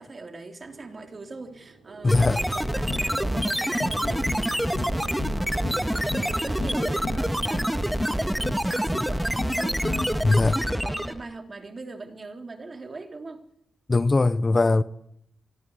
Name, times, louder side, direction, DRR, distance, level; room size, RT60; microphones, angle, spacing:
voice 1, 0.0-13.5, right 3 dB, 40° right, 3.5 m, -41 dB
sound 1, 0.6-9.4, right 5 dB, 80° right, 3.3 m, -46 dB
voice 2, 2.0-2.4 10.2-10.5 13.9-14.8, left 3 dB, 30° left, 0.9 m, -20 dB
sound 2, 2.1-11.3, equal, ahead, 1.8 m, -26 dB
sound 3, 2.9-3.5 3.8-4.4 4.7-5.4 5.6-6.3 6.6-7.2 7.5-8.1 8.4-9.1 9.4-10.0, left 4 dB, 55° left, 5.8 m, -35 dB
24.5 x 20.0 x 8.3 m
cardioid pair, 60°, 0 cm